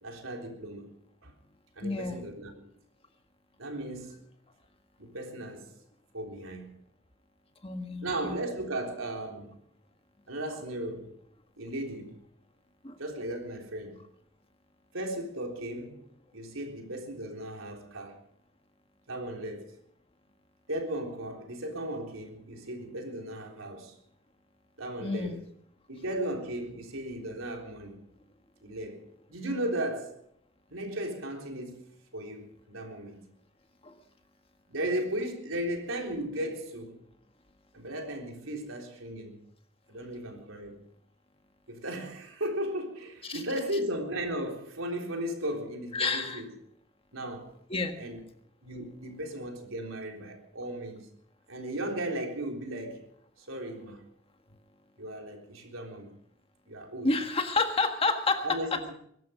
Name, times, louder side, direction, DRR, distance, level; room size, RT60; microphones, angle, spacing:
voice 1, 0.0-0.9 1.2-1.3 1.8-2.7 3.6-4.2 5.0-5.7 6.1-6.8 8.0-9.5 10.3-11.1 11.6-12.2 13.0-14.0 14.9-16.0 16.3-18.2 19.1-19.7 20.7-23.9 24.8-25.4 25.9-28.0 28.6-30.2 30.7-31.8 32.1-33.2 34.7-37.0 37.7-39.4 39.9-40.8 41.7-46.5 47.1-47.5 48.0-48.2 48.6-51.1 51.5-53.1 53.4-54.0 55.0-56.1 56.7-57.1 58.4-58.9, right 1 dB, 80° right, 3.7 m, -36 dB
voice 2, 1.8-2.2 7.6-8.4 12.8-13.0 25.0-25.4 33.8-34.0 43.2-43.4 45.9-46.4 47.7-48.0 57.0-58.9, left 3 dB, 30° left, 1.6 m, -29 dB
22.0 x 12.0 x 5.0 m
head